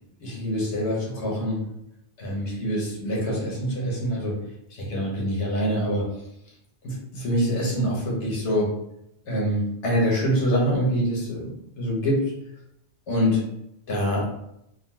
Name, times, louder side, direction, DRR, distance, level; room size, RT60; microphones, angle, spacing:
voice 1, 0.2-1.6 2.2-4.4 4.7-6.1 6.8-8.7 9.3-12.2 13.1-13.4 13.9-14.3, equal, 90° left, -3 dB, 1.2 m, -25 dB
3.7 x 2.2 x 2.2 m, 0.81 s
omnidirectional pair, 1.1 m